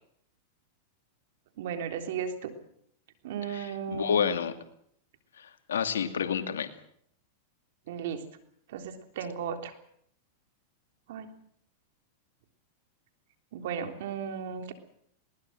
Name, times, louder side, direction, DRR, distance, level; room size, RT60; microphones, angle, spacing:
voice 1, 1.6-2.6 3.2-4.3 7.9-8.2 8.7-9.7 11.1-11.3 13.5-14.7, right 7 dB, 70° right, 7 dB, 3.4 m, -35 dB
voice 2, 3.5-4.5 5.4-6.7, left 7 dB, 90° left, 8 dB, 2.4 m, -29 dB
21.0 x 19.5 x 7.8 m, 0.68 s
hypercardioid pair, 115°, 0 cm